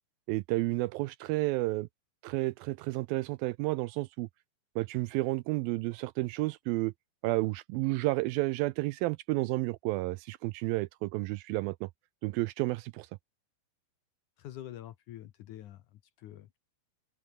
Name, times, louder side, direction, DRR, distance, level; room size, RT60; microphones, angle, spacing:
voice 1, 0.3-1.9 2.2-4.3 4.8-6.9 7.2-11.9 12.2-13.1, right 20 dB, 80° right, 2.2 m, -31 dB
voice 2, 14.4-16.6, left 12 dB, 65° left, 2.1 m, -46 dB
omnidirectional pair, 4.5 m